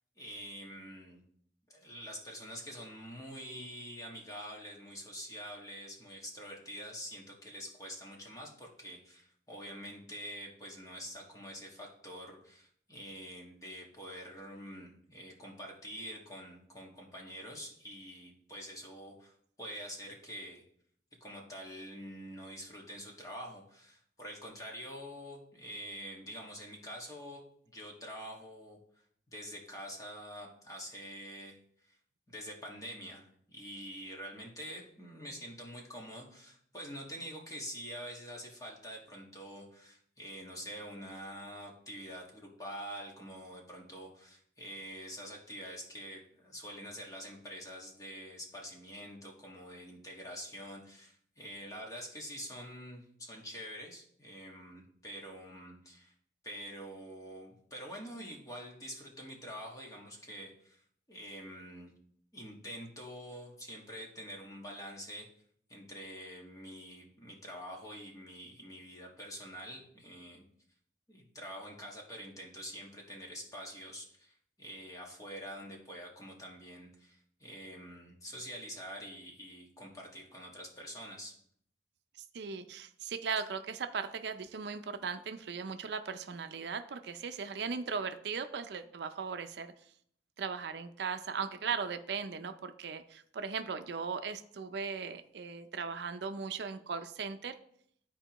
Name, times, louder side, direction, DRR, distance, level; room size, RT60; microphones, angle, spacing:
voice 1, 0.2-1.2 1.7-20.6 21.2-28.8 29.3-31.6 31.9-32.0 32.3-56.1 56.4-60.8 61.1-61.9 62.3-65.3 65.7-70.4 71.1-81.3, equal, 20° left, -1 dB, 1.4 m, -46 dB
voice 2, 82.3-89.7 90.4-97.5, right 5 dB, 70° right, 8 dB, 0.5 m, -38 dB
12.0 x 4.4 x 3.0 m, 0.66 s
head